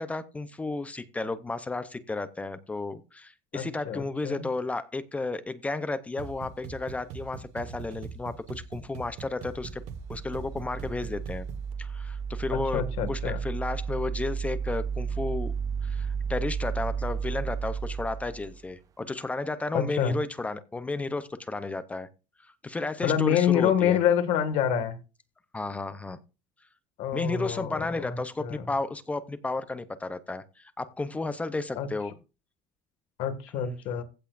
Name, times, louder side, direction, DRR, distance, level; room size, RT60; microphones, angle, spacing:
voice 1, 0.0-9.8 10.1-11.5 11.8-12.8 13.1-15.5 15.8-22.1 22.6-24.0 25.5-26.2 27.1-32.1, left 3 dB, 10° left, 0.6 m, -33 dB
voice 2, 3.5-4.5 12.7-13.4 19.7-20.2 23.0-25.0 27.0-28.7 31.8-31.9 33.2-34.0, left 8 dB, 55° left, 1.9 m, -27 dB
sound 1, 6.2-11.7, right 6 dB, 65° right, 1.4 m, -42 dB
sound 2, 9.5-18.6, right 6 dB, 25° right, 0.4 m, -33 dB
15.5 x 8.0 x 2.5 m
cardioid pair, 165°, 13 cm